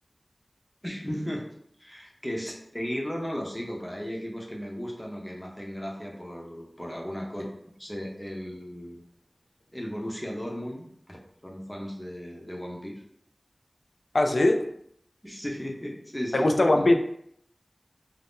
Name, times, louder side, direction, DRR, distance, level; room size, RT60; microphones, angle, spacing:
voice 1, 0.8-1.5 1.8-7.4 7.8-9.0 9.7-11.2 11.4-12.9 15.2-16.9, equal, 15° left, -1 dB, 0.7 m, -35 dB
voice 2, 14.1-14.7 16.3-17.0, left 1 dB, 75° left, 5 dB, 0.3 m, -20 dB
2.5 x 2.0 x 3.5 m, 0.70 s
wide cardioid pair, 45°, 0 cm